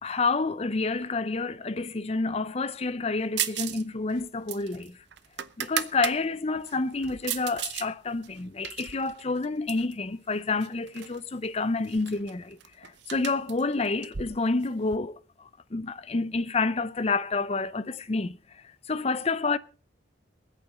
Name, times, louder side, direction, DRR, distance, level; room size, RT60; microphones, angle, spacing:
voice 1, 0.0-5.0 5.6-15.2 15.7-18.4 18.9-19.6, left 3 dB, 35° left, 0.6 m, -29 dB
sound 1, 3.4-3.8 4.1-6.2 6.6-7.9 8.2-9.9 10.6-11.2 11.4-11.5 11.8-15.0, right 10 dB, 60° right, 0.7 m, -35 dB
23.5 x 8.4 x 4.1 m
head